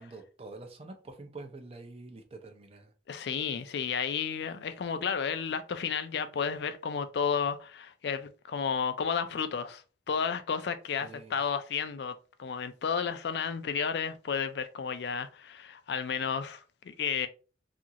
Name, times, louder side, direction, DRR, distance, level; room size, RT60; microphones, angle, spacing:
voice 1, 0.0-2.9 11.0-11.4, right 3 dB, 30° right, 0.5 m, -46 dB
voice 2, 3.1-17.3, left 6 dB, 65° left, 0.4 m, -32 dB
2.8 x 2.5 x 2.7 m
head